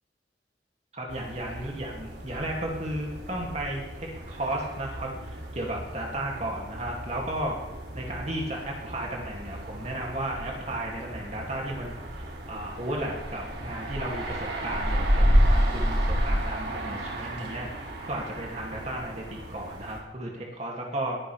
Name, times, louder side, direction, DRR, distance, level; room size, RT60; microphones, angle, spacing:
voice 1, 0.9-7.6 7.9-21.2, right 1 dB, 40° right, -1 dB, 2.5 m, -34 dB
sound 1, 1.1-20.0, equal, 70° right, 2.8 m, -31 dB
19.5 x 11.0 x 3.5 m, 1.0 s
head